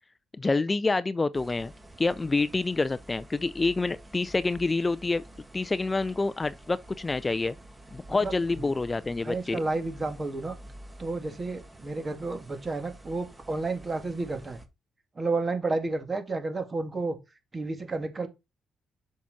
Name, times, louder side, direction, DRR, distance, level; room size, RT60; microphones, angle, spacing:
voice 1, 0.4-1.7 2.0-5.2 5.5-7.5 7.9-9.6, left 3 dB, 25° left, 0.4 m, -27 dB
sound 1, 1.3-14.7, right 1 dB, 15° right, 1.6 m, -49 dB
voice 2, 8.1-8.7 9.2-10.6 11.0-14.6 15.2-17.2 17.5-18.3, right 3 dB, 30° right, 2.2 m, -31 dB
7.3 x 5.8 x 4.2 m
cardioid pair, 90°, 0 cm